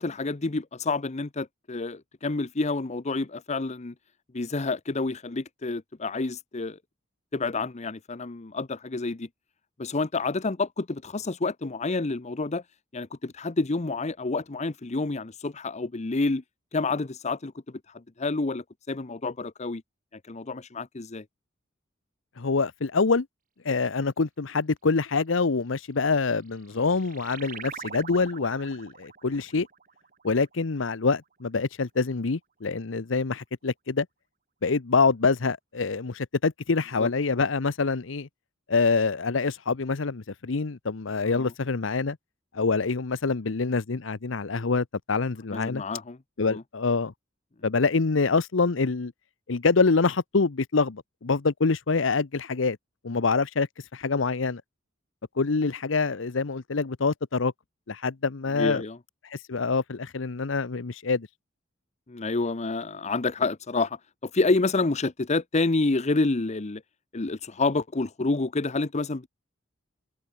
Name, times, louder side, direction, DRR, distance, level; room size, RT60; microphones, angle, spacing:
voice 1, 0.0-3.9 4.3-6.8 7.3-9.3 9.8-12.6 12.9-16.4 16.7-19.8 20.3-21.2 37.0-37.1 41.2-41.5 45.5-46.2 46.4-46.6 58.5-59.0 62.1-66.8 67.1-69.3, left 3 dB, 35° left, 0.8 m, -28 dB
voice 2, 22.4-23.3 23.6-29.7 30.2-34.1 34.6-38.3 38.7-42.2 42.5-45.8 46.4-47.1 47.6-49.1 49.5-52.8 53.0-54.6 55.4-57.5 57.9-58.8 59.3-61.3, left 4 dB, 70° left, 0.8 m, -25 dB
sound 1, 26.3-31.3, right 7 dB, 45° right, 3.0 m, -44 dB
head